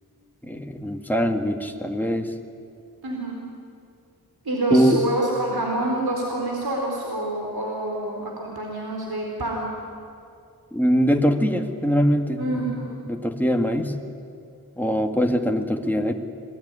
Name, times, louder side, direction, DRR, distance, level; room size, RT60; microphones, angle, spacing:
voice 1, 0.4-2.3 4.7-5.0 10.7-12.8 13.1-13.9 14.8-16.1, equal, 5° left, 4 dB, 2.0 m, -22 dB
voice 2, 3.0-3.4 4.4-9.7 12.4-12.9, right 1 dB, 75° right, 0 dB, 3.9 m, -27 dB
27.0 x 19.5 x 9.8 m, 2.4 s
wide cardioid pair, 50°, 38 cm